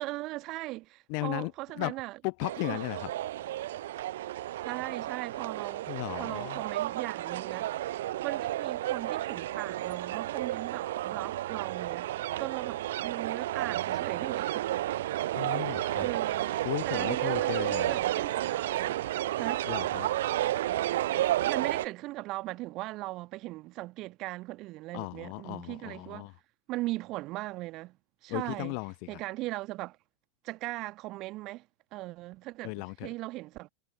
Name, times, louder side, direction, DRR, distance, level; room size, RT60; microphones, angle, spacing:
voice 1, 0.0-2.2 4.6-5.9 6.2-7.7 8.2-14.6 16.0-16.5 16.8-19.0 19.4-19.6 21.5-26.3 26.7-28.0 28.2-28.8 29.1-30.0 30.4-31.7 31.9-33.7, right 19 dB, 40° right, 1.3 m, -38 dB
voice 2, 1.1-2.0 2.2-3.1 5.9-6.6 15.3-16.1 16.6-18.0 19.6-20.1 24.9-26.3 28.3-29.2 32.6-33.1, left 40 dB or more, 45° left, 0.6 m, -36 dB
sound 1, 2.4-21.9, right 14 dB, 55° right, 0.3 m, -32 dB
figure-of-eight pair, 90°, 0 cm